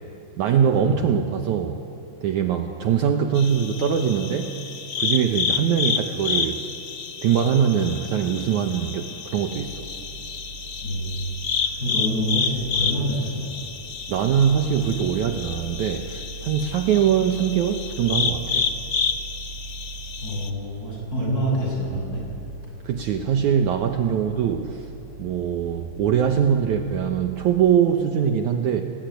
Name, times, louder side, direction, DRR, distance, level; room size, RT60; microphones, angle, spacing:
voice 1, 0.4-1.8 2.2-4.5 5.0-6.6 7.2-9.9 14.1-18.6 22.8-24.9 25.2-28.8, right 8 dB, 65° right, 4 dB, 2.2 m, -22 dB
sound 1, 3.3-20.5, left 6 dB, 80° left, 1.0 m, -30 dB
sound 2, 9.6-27.8, right 3 dB, 20° right, 6.5 m, -41 dB
voice 2, 10.8-11.3 11.6-13.5 20.2-22.2, equal, 25° left, -2 dB, 8.0 m, -27 dB
29.5 x 20.0 x 9.3 m, 2.7 s
omnidirectional pair, 4.0 m